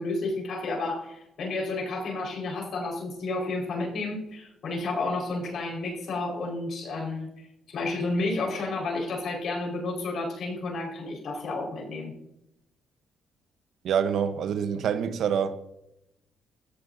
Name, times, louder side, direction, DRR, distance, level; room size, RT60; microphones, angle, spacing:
voice 1, 0.0-12.1, left 2 dB, 65° left, 4.8 m, -31 dB
voice 2, 13.8-15.6, right 8 dB, 70° right, 1.0 m, -26 dB
17.0 x 14.0 x 2.7 m
cardioid pair, 90°, 0 cm